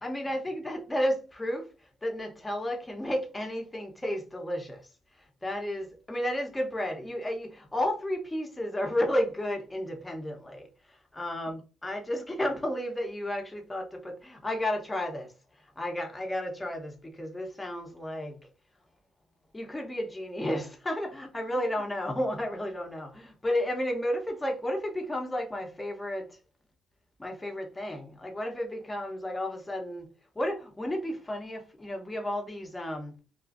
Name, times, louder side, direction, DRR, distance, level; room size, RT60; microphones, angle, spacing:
voice 1, 0.0-1.7 2.0-4.9 5.4-15.3 15.8-18.4 19.5-26.4 27.2-30.1 30.4-33.2, left 1 dB, 15° left, 0.7 m, -32 dB
2.4 x 2.4 x 2.4 m
cardioid pair, 90°, 0 cm